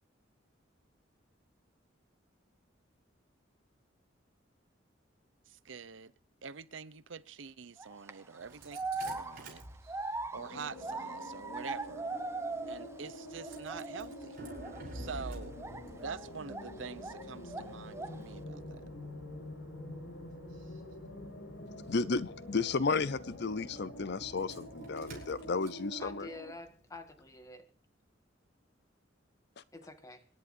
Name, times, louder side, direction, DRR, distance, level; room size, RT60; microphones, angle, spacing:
voice 1, 5.5-6.1 6.4-9.6 10.3-12.1 12.7-14.4 14.9-15.5 16.0-18.8, right 5 dB, 80° right, 16 dB, 0.7 m, -45 dB
sound 1, 7.8-8.1 8.7-13.1 13.3-14.1 14.5-14.8 15.6-17.2 17.5-18.3, right 3 dB, 15° right, 0.8 m, -40 dB
Engine starting, 8.4-27.4, right 1 dB, 50° right, 6.0 m, -52 dB
sound 2, 10.3-26.5, left 1 dB, 85° left, 5.4 m, -47 dB
voice 2, 21.9-26.3, left 4 dB, 60° left, 16 dB, 0.7 m, -33 dB
voice 3, 26.0-27.7 29.7-30.3, left 3 dB, 20° left, 7 dB, 1.7 m, -48 dB
26.5 x 11.0 x 2.6 m, 0.38 s
head